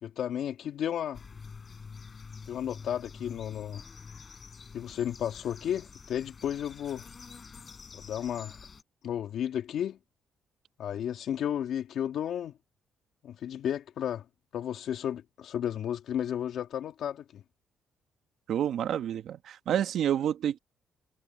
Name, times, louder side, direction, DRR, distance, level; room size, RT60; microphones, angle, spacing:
voice 1, 0.0-1.2 2.5-3.8 4.7-7.0 7.9-8.5 9.0-10.0 10.8-12.5 13.2-14.2 14.5-17.4, left 10 dB, 70° left, 2.7 m, -33 dB
sound 1, 1.1-8.8, left 5 dB, 40° left, 4.8 m, -47 dB
voice 2, 18.5-20.6, right 10 dB, 70° right, 1.7 m, -29 dB
cardioid pair, 90°, 0 cm